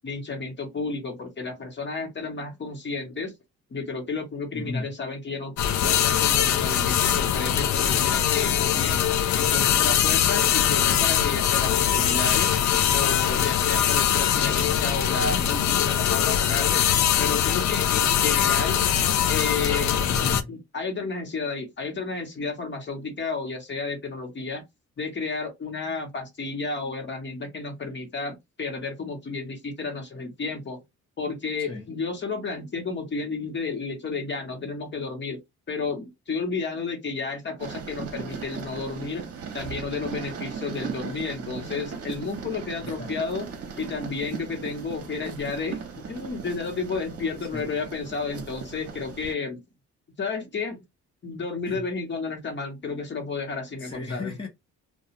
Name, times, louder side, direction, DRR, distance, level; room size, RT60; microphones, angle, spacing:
voice 1, 0.0-3.3 3.7-5.5 5.8-9.0 9.3-12.5 12.9-16.9 17.2-18.8 19.3-20.1 20.5-24.6 25.0-30.8 31.2-35.4 35.7-39.3 39.5-43.5 43.8-49.6 50.2-50.8 51.2-54.3, left 4 dB, 40° left, 1.1 m, -32 dB
voice 2, 4.5-4.9 20.0-20.5 31.6-31.9 43.0-43.1 47.5-47.7 51.7-51.8 53.8-54.5, left 3 dB, 20° left, 0.8 m, -34 dB
sound 1, 5.6-20.4, left 9 dB, 70° left, 0.5 m, -22 dB
sound 2, 37.6-49.3, right 6 dB, 50° right, 0.9 m, -38 dB
2.3 x 2.2 x 2.9 m
cardioid pair, 90°, 30 cm